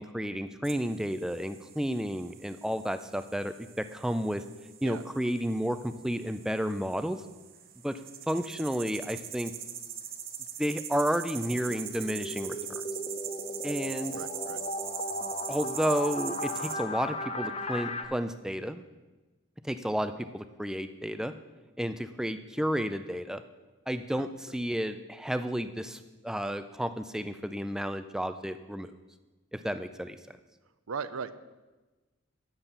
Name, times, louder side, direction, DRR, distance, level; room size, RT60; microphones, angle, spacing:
voice 1, 0.0-4.4 4.8-7.2 7.8-8.0 8.3-9.5 10.6-12.8 13.6-14.2 15.5-18.8 19.6-21.3 21.8-23.4 23.9-28.9 29.5-30.2, equal, 5° right, 10 dB, 0.4 m, -32 dB
sound 1, 0.6-16.7, right 9 dB, 45° right, 0.9 m, -42 dB
sound 2, 11.5-18.0, left 1 dB, 30° left, 0.7 m, -36 dB
voice 2, 14.1-14.6 24.1-24.3 30.9-31.3, right 5 dB, 90° right, 12 dB, 0.6 m, -37 dB
10.0 x 7.3 x 6.8 m, 1.2 s
head